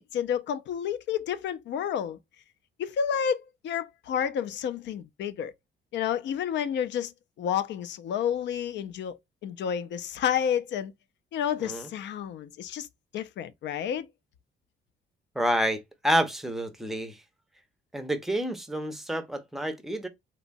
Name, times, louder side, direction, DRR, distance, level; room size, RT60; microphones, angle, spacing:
voice 1, 0.0-2.2 2.8-5.5 5.9-7.1 7.4-10.9 11.3-12.9 13.1-14.1, left 8 dB, 65° left, 0.4 m, -30 dB
voice 2, 15.3-17.2 17.9-20.1, right 1 dB, ahead, 0.5 m, -29 dB
2.9 x 2.1 x 2.5 m
cardioid pair, 90°, 20 cm